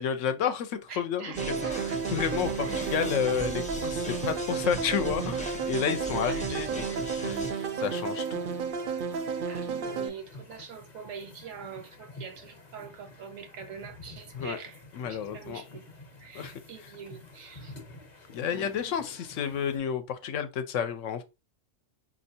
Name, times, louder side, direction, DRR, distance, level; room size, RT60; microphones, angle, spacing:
voice 1, 0.0-1.3 2.1-8.4 14.4-14.6 14.9-15.6 16.3-16.5 18.3-21.2, left 8 dB, 75° left, 0.9 m, -31 dB
voice 2, 0.9-2.0 2.6-3.1 6.2-7.0 9.5-14.8 15.1-15.9 16.2-17.8 18.5-19.2 20.2-20.3, right 6 dB, 85° right, 1.2 m, -44 dB
sound 1, 1.3-7.5, right 1 dB, 10° left, 0.3 m, -39 dB
sound 2, 1.4-10.1, right 6 dB, 55° right, 0.6 m, -32 dB
sound 3, 1.7-19.8, left 2 dB, 40° left, 0.8 m, -50 dB
4.4 x 2.7 x 2.7 m
omnidirectional pair, 1.3 m